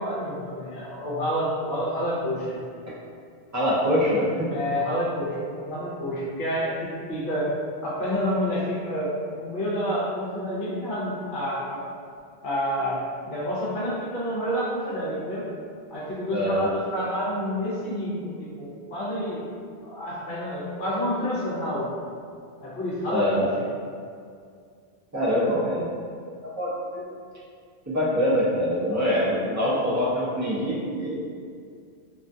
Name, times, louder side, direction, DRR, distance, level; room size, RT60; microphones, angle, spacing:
voice 1, 0.0-2.6 4.5-7.5 7.8-11.8 12.4-15.5 15.9-19.5 19.8-21.9 22.6-23.5, equal, 55° left, -6 dB, 0.7 m, -29 dB
voice 2, 3.5-4.5 16.3-16.7 23.1-23.5 25.1-25.9 26.6-27.0 27.9-31.2, equal, 25° right, -8 dB, 0.4 m, -24 dB
2.4 x 2.3 x 2.6 m, 2.2 s
omnidirectional pair, 1.1 m